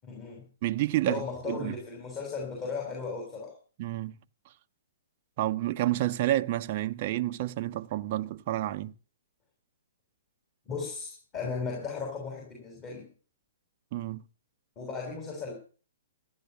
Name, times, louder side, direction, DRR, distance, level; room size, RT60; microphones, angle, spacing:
voice 1, 0.0-0.5 1.0-3.6 10.7-13.1 14.8-15.5, left 5 dB, 30° left, 7.3 m, -36 dB
voice 2, 0.6-1.7 3.8-4.2 5.4-8.9 13.9-14.2, right 15 dB, 45° right, 0.7 m, -29 dB
15.0 x 11.0 x 6.9 m
hypercardioid pair, 130°, 0 cm